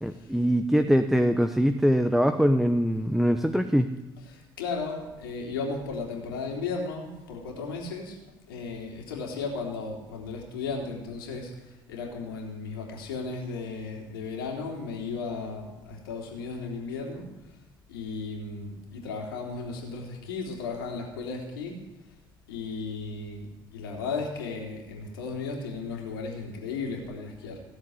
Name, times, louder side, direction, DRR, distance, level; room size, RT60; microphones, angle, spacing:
voice 1, 0.0-3.9, equal, ahead, 8 dB, 1.1 m, -23 dB
voice 2, 4.3-8.2 8.5-17.3 17.9-21.8 22.5-27.6, left 4 dB, 80° left, 0 dB, 3.6 m, -35 dB
18.0 x 7.7 x 9.8 m, 1.1 s
hypercardioid pair, 55°, 12 cm